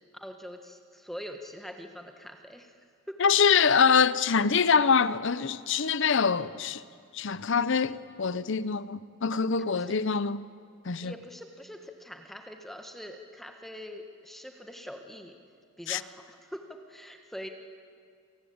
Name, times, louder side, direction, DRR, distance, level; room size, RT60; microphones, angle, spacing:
voice 1, 0.1-2.7 3.1-3.7 9.7-10.0 11.0-15.4 15.8-17.5, equal, ahead, 1.5 m, -43 dB
voice 2, 3.2-6.8 7.1-10.4 10.9-11.1 15.9-16.0, left 6 dB, 60° left, 0.6 m, -24 dB
28.0 x 19.0 x 8.7 m
head